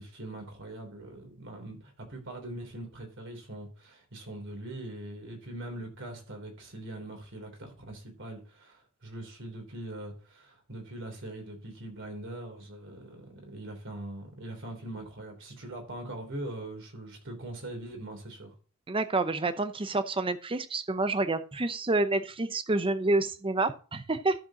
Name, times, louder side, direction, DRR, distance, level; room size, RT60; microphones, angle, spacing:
voice 1, 0.0-18.5, right 1 dB, 60° right, 3.4 m, -42 dB
voice 2, 18.9-24.4, right 2 dB, 25° right, 0.7 m, -28 dB
13.0 x 7.2 x 2.9 m
head